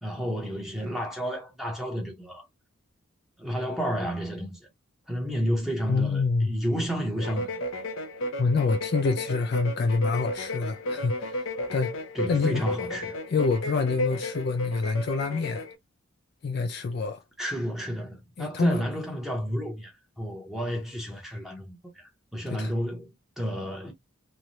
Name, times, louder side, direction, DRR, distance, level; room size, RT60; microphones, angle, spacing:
voice 1, 0.0-2.4 3.4-4.6 5.1-7.6 12.1-13.1 17.4-19.9 20.2-23.9, equal, ahead, 0.8 m, -31 dB
voice 2, 5.9-6.5 8.4-11.4 11.7-12.0 12.3-12.7 13.3-15.6 16.4-17.2 18.4-18.8 22.5-22.7, left 4 dB, 50° left, 0.3 m, -26 dB
sound 1, 7.2-15.7, left 1 dB, 85° left, 0.7 m, -33 dB
3.1 x 2.2 x 2.6 m
head